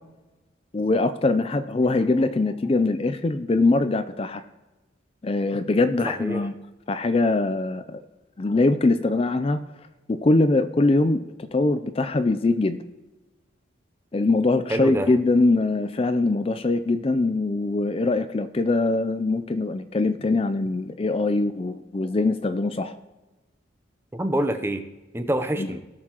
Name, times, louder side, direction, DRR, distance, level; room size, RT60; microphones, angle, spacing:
voice 1, 0.7-4.4 5.2-6.6 6.9-8.0 8.4-9.6 10.1-11.2 11.5-12.8 14.1-23.0 25.6-25.7, left 2 dB, 30° left, 10 dB, 0.4 m, -22 dB
voice 2, 14.7-15.1 24.1-24.9 25.1-25.8, right 1 dB, 10° right, 7 dB, 0.6 m, -26 dB
17.5 x 6.6 x 3.0 m, 1.1 s
head